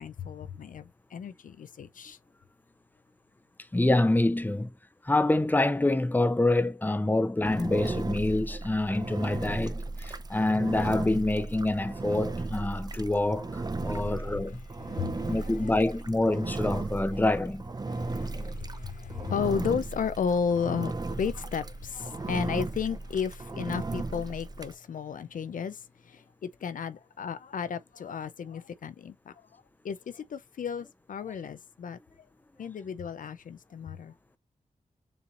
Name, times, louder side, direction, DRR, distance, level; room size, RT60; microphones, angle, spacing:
voice 1, 0.0-2.2 13.8-14.4 14.8-15.8 17.9-32.0 32.6-34.1, left 6 dB, 75° left, 0.5 m, -34 dB
voice 2, 3.7-4.7 5.0-14.6 15.3-17.7, left 2 dB, 15° left, 0.7 m, -26 dB
Engine, 7.5-24.8, right 3 dB, 30° right, 0.5 m, -36 dB
7.0 x 2.8 x 2.5 m
cardioid pair, 45°, 14 cm